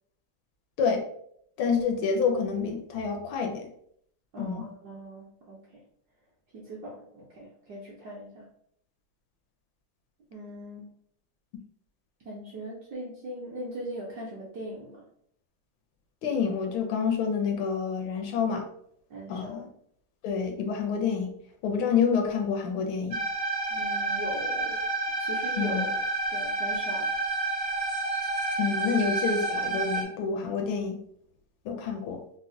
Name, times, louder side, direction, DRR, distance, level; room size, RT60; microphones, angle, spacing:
voice 1, 1.6-3.7 4.4-4.7 16.2-18.6 19.3-19.7 20.2-21.3 21.6-23.2 25.6-25.9 28.6-31.0 31.6-32.2, left 6 dB, 75° left, 4 dB, 1.3 m, -28 dB
voice 2, 4.3-5.8 6.5-8.5 10.3-10.9 12.2-15.0 19.1-19.7 23.7-24.8 25.2-25.9 26.3-27.1, right 1 dB, 70° right, -4 dB, 1.0 m, -40 dB
sound 1, 23.1-30.0, right 2 dB, 85° right, 0.5 m, -29 dB
4.0 x 2.1 x 2.6 m, 0.67 s
omnidirectional pair, 2.3 m